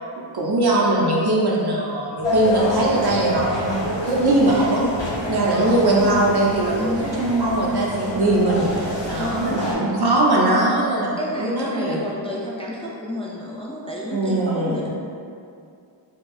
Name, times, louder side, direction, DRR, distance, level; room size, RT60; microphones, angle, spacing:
voice 1, 0.2-4.8 5.3-8.7 9.0-11.1 11.4-12.0 14.1-14.9, right 2 dB, 55° right, -4 dB, 0.7 m, -20 dB
sound 1, 2.2-9.8, left 1 dB, 65° left, 1.0 m, -28 dB
voice 2, 5.5-6.1 6.7-7.4 9.1-9.8 11.2-14.9, left 1 dB, 15° left, -5 dB, 0.4 m, -30 dB
4.4 x 2.2 x 2.4 m, 2.5 s
wide cardioid pair, 50°, 47 cm